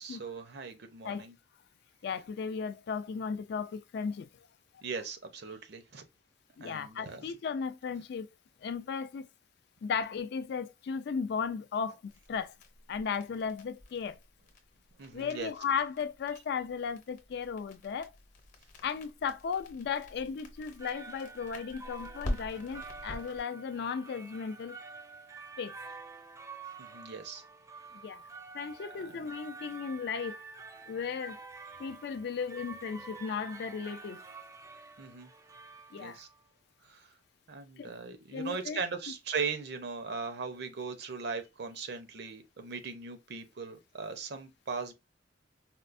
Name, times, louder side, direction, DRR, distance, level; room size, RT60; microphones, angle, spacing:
voice 1, 0.0-1.3 4.8-6.0 6.6-7.3 15.0-15.5 26.8-27.4 29.1-29.2 35.0-35.3 36.0-36.3 36.8-37.1 37.5-44.9, right 5 dB, 65° right, 0.6 m, -39 dB
voice 2, 2.0-4.5 6.6-8.3 8.6-9.3 9.8-12.5 12.9-14.2 15.1-18.1 18.8-24.8 25.6-25.7 27.9-28.2 28.5-30.4 30.9-31.4 31.8-34.2 35.9-36.2 37.8-37.9 38.3-38.8, left 6 dB, 60° left, 0.3 m, -35 dB
sound 1, 12.1-23.4, left 1 dB, 45° left, 0.8 m, -45 dB
sound 2, 20.6-36.5, right 4 dB, 15° right, 0.3 m, -48 dB
4.3 x 2.0 x 2.5 m
head